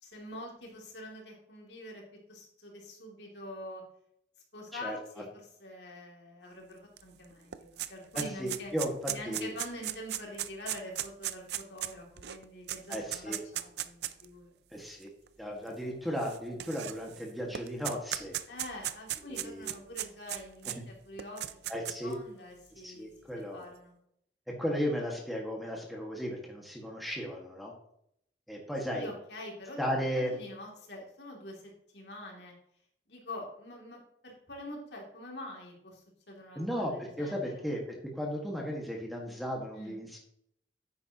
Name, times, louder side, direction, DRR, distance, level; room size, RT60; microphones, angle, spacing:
voice 1, 0.0-2.0 2.3-3.8 4.5-8.7 9.1-14.5 18.5-21.5 22.0-23.1 23.5-23.9 28.9-29.9 30.1-32.5 33.1-37.6 39.7-40.0, left 1 dB, 80° left, -1 dB, 2.8 m, -45 dB
sound 1, 7.0-7.1 7.3-14.2 15.0-15.1 16.2-17.2 17.5-20.8 21.2-22.1, right 12 dB, 70° right, 0.5 m, -36 dB
voice 2, 8.1-9.5 12.9-13.4 14.7-15.1 15.4-18.3 19.2-19.7 20.7-20.8 21.7-22.1 22.8-23.6 24.6-27.7 28.5-29.1 29.8-30.3 36.5-40.2, equal, ahead, -1 dB, 1.8 m, -35 dB
9.9 x 8.9 x 3.0 m, 0.72 s
head